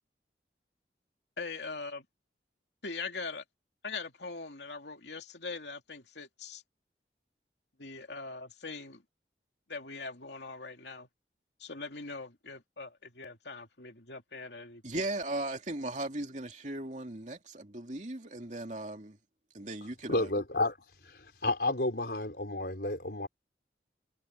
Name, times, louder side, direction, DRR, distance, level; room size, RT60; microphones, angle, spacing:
voice 1, 1.4-2.0 2.8-3.4 3.8-6.6 7.8-9.0 9.7-11.1 11.6-15.1, left 4 dB, 80° left, 2.8 m, -42 dB
voice 2, 14.8-19.2 19.5-20.4, right 2 dB, 45° right, 2.8 m, -37 dB
voice 3, 20.1-20.8 21.0-23.3, left 2 dB, 65° left, 4.4 m, -31 dB
head